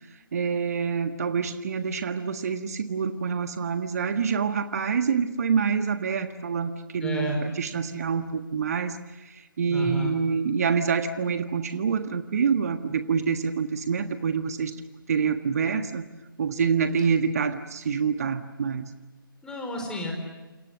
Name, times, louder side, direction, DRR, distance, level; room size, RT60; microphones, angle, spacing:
voice 1, 0.3-14.8 15.1-16.1 16.4-18.9, right 6 dB, 45° right, 9 dB, 1.5 m, -26 dB
voice 2, 7.0-7.4 9.7-10.2 19.4-20.1, left 1 dB, 5° left, 2 dB, 4.5 m, -31 dB
28.5 x 28.0 x 6.4 m, 1.1 s
figure-of-eight pair, 145°, 12 cm